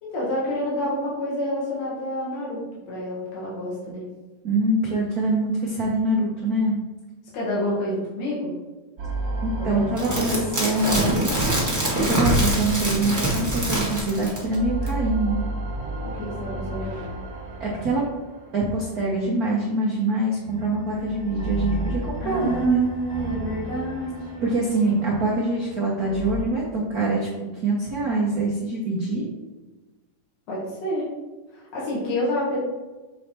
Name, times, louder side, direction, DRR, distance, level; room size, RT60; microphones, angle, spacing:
voice 1, 0.0-4.0 7.3-8.5 9.6-10.5 10.8-11.5 16.0-17.0 22.2-24.5 30.5-31.1 31.5-32.6, equal, 65° left, -6 dB, 2.7 m, -28 dB
voice 2, 4.4-6.8 9.4-10.3 10.6-11.3 12.0-15.4 17.6-18.0 18.5-22.9 24.4-27.3 27.6-29.3, right 2 dB, 85° right, -5 dB, 0.8 m, -24 dB
sound 1, 9.0-13.9 14.3-19.6 20.4-26.4, right 1 dB, 60° right, 1.0 m, -33 dB
sound 2, 10.0-14.5 14.9-15.0, right 1 dB, 20° right, 0.4 m, -24 dB
7.2 x 3.3 x 4.4 m, 1.2 s
omnidirectional pair, 3.3 m